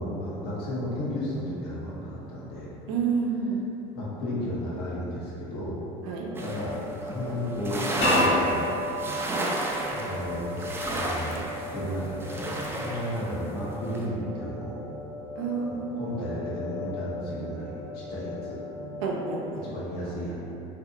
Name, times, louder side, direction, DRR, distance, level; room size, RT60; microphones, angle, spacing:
voice 1, 0.0-2.7 3.9-5.8 6.4-8.7 9.9-14.8 15.7-18.5 19.5-20.3, equal, 65° left, -7 dB, 0.9 m, -34 dB
voice 2, 2.9-3.6 6.1-6.3 15.4-15.9 19.0-19.7, right 5 dB, 80° right, -1 dB, 0.4 m, -29 dB
sound 1, 6.3-19.5, left 2 dB, 60° right, 0.8 m, -38 dB
sound 2, 6.4-6.8 7.1-7.2 7.5-13.3 13.7-14.1, right 1 dB, 15° right, 0.3 m, -31 dB
sound 3, 8.0-10.9, equal, 40° left, 0.9 m, -29 dB
2.6 x 2.3 x 2.6 m, 2.9 s
supercardioid pair, 90°, 17 cm